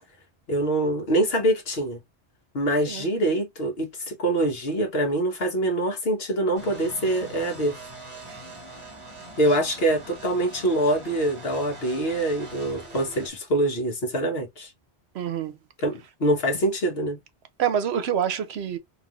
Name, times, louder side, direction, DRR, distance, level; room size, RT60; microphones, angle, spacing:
voice 1, 0.5-2.0 2.5-7.7 9.4-14.7 15.8-17.2, right 1 dB, 60° left, 1.4 m, -24 dB
sound 1, 6.6-13.3, right 2 dB, 30° right, 1.2 m, -42 dB
voice 2, 15.1-15.5 17.6-18.8, right 9 dB, 70° right, 0.9 m, -26 dB
3.9 x 2.5 x 2.9 m
omnidirectional pair, 1.2 m